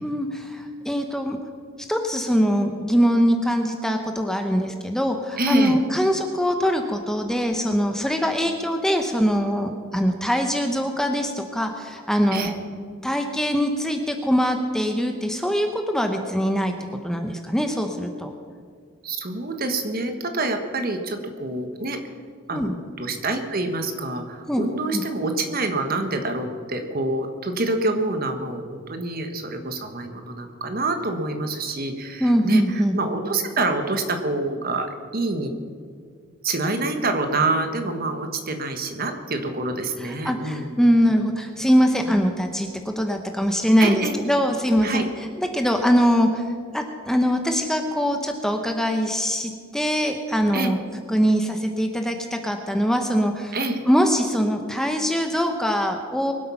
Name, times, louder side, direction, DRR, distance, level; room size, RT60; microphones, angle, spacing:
voice 1, 0.0-1.4 1.9-12.5 13.0-16.7 17.0-18.3 22.5-22.7 24.5-24.7 24.9-25.0 32.2-33.0 40.0-45.0 45.4-46.4 46.7-50.8 51.1-53.6 53.8-56.3, equal, ahead, 4 dB, 0.8 m, -22 dB
voice 2, 5.4-5.8 12.3-12.5 19.0-22.0 22.5-35.5 36.4-40.8 42.1-42.2 43.8-44.2 44.8-45.0 50.5-50.7 53.5-53.8, right 2 dB, 45° right, 6 dB, 1.4 m, -26 dB
22.5 x 8.3 x 5.8 m, 2.1 s
head